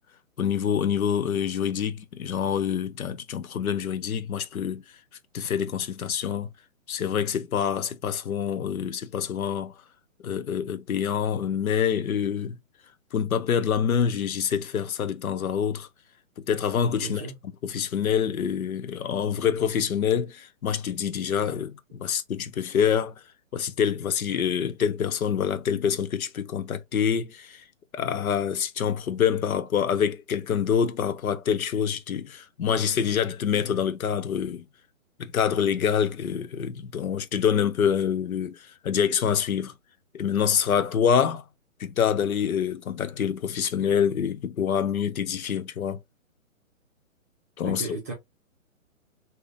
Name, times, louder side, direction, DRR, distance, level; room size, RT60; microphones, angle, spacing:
voice 1, 0.4-4.8 5.3-6.5 6.9-9.7 10.2-12.6 13.1-15.9 16.5-17.2 17.6-23.1 23.5-27.6 27.9-34.6 35.2-39.7 40.1-41.4 41.8-46.0 47.6-47.9, left 8 dB, 90° left, 0.7 m, -26 dB
voice 2, 17.0-17.4 47.6-48.1, right 3 dB, 10° right, 0.6 m, -35 dB
3.3 x 2.8 x 2.4 m
hypercardioid pair, 160°, 41 cm